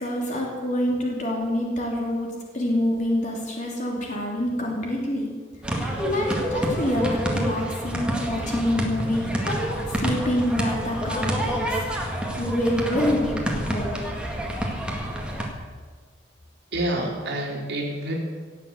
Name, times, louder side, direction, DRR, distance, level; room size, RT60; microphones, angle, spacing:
voice 1, 0.0-2.3 2.5-5.3 5.7-14.0, left 1 dB, 40° left, -2 dB, 3.1 m, -27 dB
sound 1, 5.6-15.5, equal, 5° right, 2.0 m, -28 dB
voice 2, 16.7-18.1, right 1 dB, 60° right, -1 dB, 3.0 m, -28 dB
17.5 x 7.4 x 8.1 m, 1.5 s
head